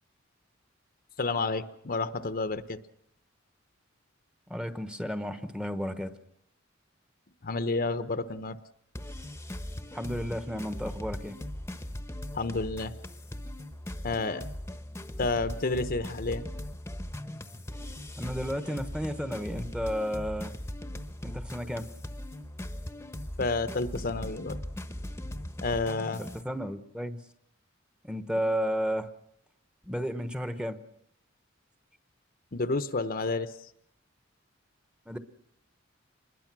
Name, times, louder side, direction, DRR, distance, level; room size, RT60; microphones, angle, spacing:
voice 1, 1.2-2.8 7.4-8.6 12.3-12.9 14.0-14.4 15.2-16.5 23.4-24.6 25.6-26.2 32.5-33.5, left 3 dB, 45° left, 11 dB, 0.9 m, -30 dB
voice 2, 4.5-6.1 9.9-11.4 18.2-20.5 21.2-21.9 26.2-27.2 28.0-29.1 29.8-30.8 35.1-35.2, equal, 5° right, 10 dB, 1.1 m, -32 dB
sound 1, 9.0-26.4, left 1 dB, 15° left, 1.0 m, -39 dB
25.5 x 21.0 x 6.1 m, 0.75 s
head